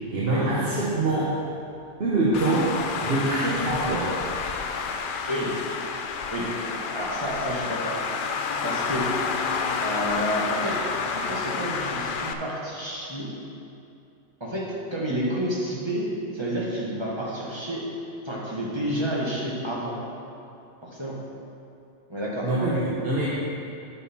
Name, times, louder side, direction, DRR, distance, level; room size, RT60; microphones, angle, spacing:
voice 1, 0.1-1.3 2.0-2.7 3.0-4.1 22.4-23.3, right 2 dB, 55° right, -7 dB, 1.3 m, -24 dB
Traffic noise roadway noise, 2.3-12.3, left 5 dB, 60° left, 0.6 m, -29 dB
voice 2, 6.9-8.0 8.6-9.2 9.8-13.3 14.4-17.9 18.2-20.0 20.8-21.2 22.1-22.5, equal, 25° right, -5 dB, 1.4 m, -30 dB
9.0 x 6.6 x 4.2 m, 2.7 s
omnidirectional pair, 1.3 m